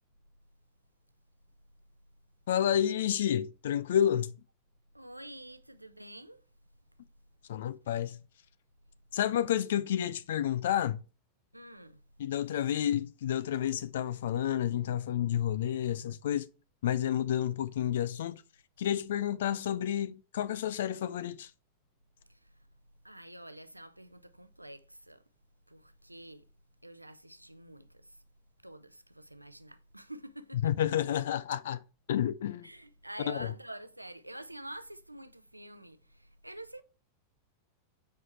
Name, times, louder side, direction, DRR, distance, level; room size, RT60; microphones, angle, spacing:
voice 1, 2.5-4.4 7.5-8.2 9.1-11.0 12.2-16.5 16.8-18.4 18.8-21.5 30.6-31.8 32.1-32.7 33.3-33.5, left 10 dB, 60° left, 0.3 m, -30 dB
voice 2, 4.9-6.4 9.3-9.4 11.5-12.0 22.3-22.5 23.0-25.2 25.7-26.4 26.8-28.2 28.6-30.7 32.6-36.8, right 1 dB, 85° right, 0.6 m, -48 dB
7.7 x 4.6 x 4.5 m
figure-of-eight pair, 90°, 0 cm